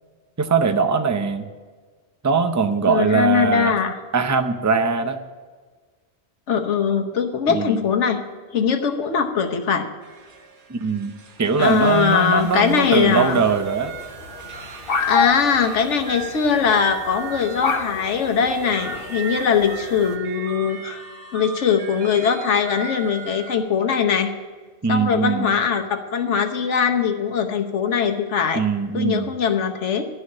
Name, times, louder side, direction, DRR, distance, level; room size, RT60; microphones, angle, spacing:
voice 1, 0.4-1.4 2.2-3.7 4.1-5.2 7.5-7.8 10.7-11.1 11.4-13.9 24.8-25.5 28.5-29.3, right 5 dB, 20° right, 8 dB, 0.5 m, -21 dB
voice 2, 2.9-4.0 6.5-8.2 8.5-9.9 11.6-13.4 15.0-21.0 21.3-24.3 24.9-28.6 28.9-30.1, left 6 dB, 90° left, 5 dB, 1.3 m, -21 dB
sound 1, 10.0-23.6, right 7 dB, 80° right, 1.4 m, -39 dB
sound 2, 11.6-20.2, left 5 dB, 55° left, 1.2 m, -30 dB
11.5 x 6.4 x 8.6 m, 1.5 s
omnidirectional pair, 1.2 m